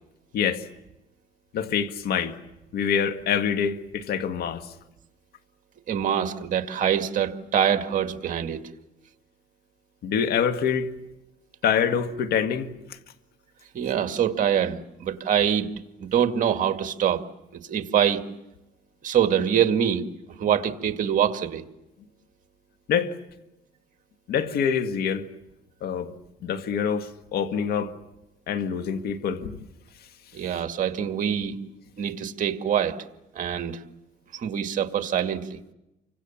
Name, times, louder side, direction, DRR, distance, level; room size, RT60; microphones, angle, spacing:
voice 1, 0.3-0.6 1.5-2.3 2.7-4.7 10.0-10.9 11.6-12.7 22.9-23.1 24.3-25.3 25.8-26.1 26.4-27.9 28.5-29.6, left 7 dB, 70° left, 1.8 m, -25 dB
voice 2, 5.9-8.6 13.7-15.7 16.0-17.2 17.7-18.2 19.0-20.0 20.4-21.6 30.3-31.6 32.0-33.0 33.3-33.8 34.3-35.6, right 9 dB, 50° right, 2.0 m, -24 dB
29.5 x 25.0 x 7.2 m
cardioid pair, 110°, 17 cm